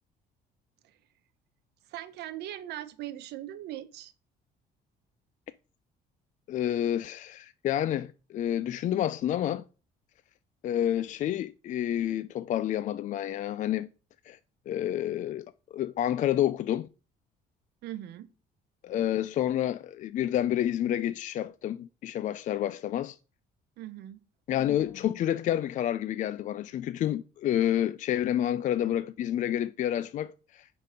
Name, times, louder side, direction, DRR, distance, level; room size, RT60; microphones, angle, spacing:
voice 1, 1.9-4.1 17.8-18.3 23.8-24.2, right 13 dB, 75° right, 0.9 m, -40 dB
voice 2, 6.5-9.6 10.6-13.9 14.3-14.4 14.7-15.5 15.7-16.9 18.8-23.2 24.5-30.7, left 11 dB, 50° left, 0.4 m, -29 dB
6.5 x 5.4 x 5.2 m
cardioid pair, 110°, 17 cm